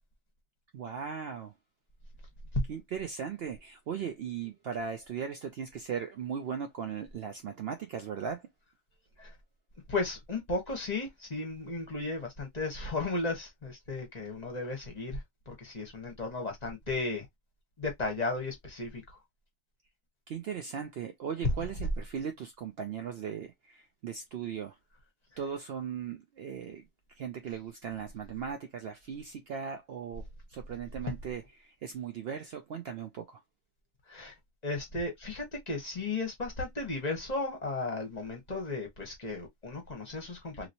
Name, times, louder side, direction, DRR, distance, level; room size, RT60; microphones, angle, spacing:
voice 1, 0.7-1.5 2.7-8.4 20.3-24.8 25.4-26.8 27.2-33.4, right 7 dB, 65° right, 0.7 m, -38 dB
voice 2, 9.9-17.3 17.8-19.2 34.1-34.3 34.6-40.7, left 3 dB, 35° left, 1.1 m, -35 dB
3.0 x 2.9 x 2.5 m
omnidirectional pair, 1.3 m